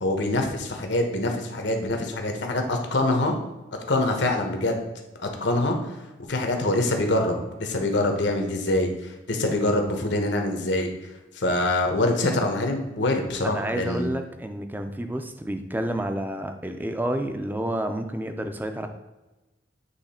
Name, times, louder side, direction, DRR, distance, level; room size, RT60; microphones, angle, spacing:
voice 1, 0.0-3.3 3.9-4.8 5.4-5.8 6.3-10.9 11.4-14.2, left 2 dB, 75° left, 3 dB, 1.0 m, -24 dB
voice 2, 13.4-18.9, right 1 dB, 10° right, 6 dB, 0.4 m, -30 dB
8.2 x 3.2 x 4.2 m, 1.1 s
head